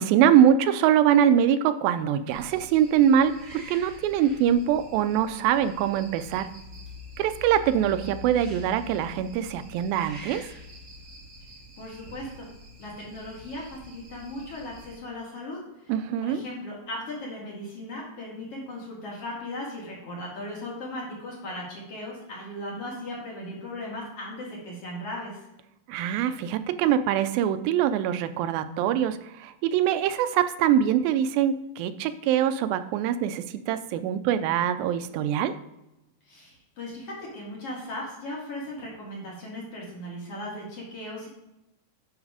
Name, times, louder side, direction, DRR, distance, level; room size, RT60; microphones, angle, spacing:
voice 1, 0.0-6.5 7.2-10.4 15.9-16.4 25.9-35.5, right 9 dB, 90° right, 11 dB, 2.4 m, -23 dB
sound 1, 2.3-15.0, left 2 dB, 45° right, 0.9 m, -45 dB
voice 2, 11.8-12.5 12.8-15.9 16.2-25.4 36.3-41.3, left 1 dB, 45° left, -3 dB, 2.5 m, -37 dB
11.0 x 4.0 x 4.9 m, 0.93 s
omnidirectional pair, 4.1 m